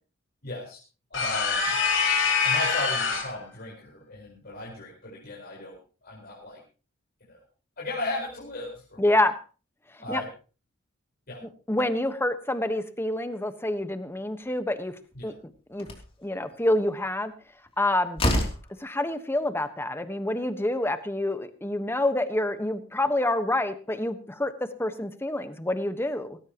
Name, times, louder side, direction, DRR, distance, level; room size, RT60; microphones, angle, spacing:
voice 1, 0.4-0.8 1.1-1.7 2.4-6.6 7.3-7.4 7.8-9.1 10.0-10.3 11.3-11.4 15.1-15.3, left 2 dB, 50° left, -4 dB, 4.8 m, -36 dB
sound 1, 1.1-3.4, left 5 dB, 75° left, 4.4 m, -24 dB
voice 2, 9.0-9.4 10.1-10.2 11.7-14.9 15.2-15.9 16.2-17.3 17.8-18.2 18.8-26.4, left 1 dB, 10° left, 9 dB, 1.3 m, -27 dB
Slam, 15.1-15.2 15.8-16.1 17.7-17.8 18.2-18.7, left 1 dB, 30° left, 3.1 m, -26 dB
18.5 x 17.0 x 3.0 m, 0.36 s
head